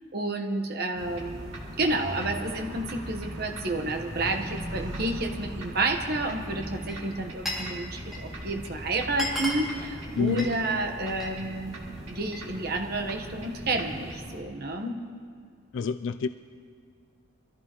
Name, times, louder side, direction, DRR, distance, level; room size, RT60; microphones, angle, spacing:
voice 1, 0.1-11.7 12.1-15.0, right 2 dB, 50° right, 4 dB, 1.2 m, -30 dB
sound 1, 0.9-14.4, equal, 80° right, 2.2 m, -39 dB
Glass, 6.7-7.7 8.0-8.4 8.8-8.9 9.1-11.4 11.7-12.5, equal, ahead, 2.4 m, -35 dB
voice 2, 10.2-10.5 15.7-16.3, left 6 dB, 65° left, 11 dB, 0.4 m, -27 dB
24.0 x 14.5 x 3.0 m, 2.2 s
head